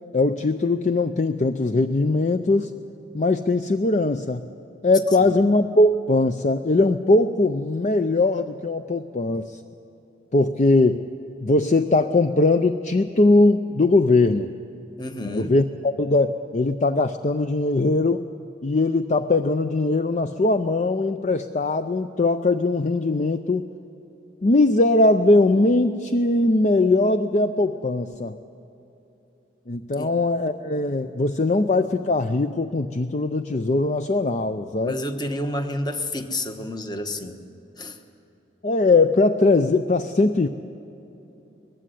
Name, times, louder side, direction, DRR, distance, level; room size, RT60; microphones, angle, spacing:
voice 1, 0.1-2.7 3.1-4.5 4.8-9.6 10.3-11.1 11.4-14.5 15.2-18.2 18.6-23.7 24.4-28.4 29.7-34.9 38.6-40.5, left 2 dB, 40° left, 9 dB, 0.5 m, -20 dB
voice 2, 5.1-5.4 15.0-15.6 30.0-30.2 34.8-37.4 37.8-38.0, left 1 dB, 25° left, 7 dB, 1.1 m, -30 dB
20.5 x 15.5 x 10.0 m, 3.0 s
head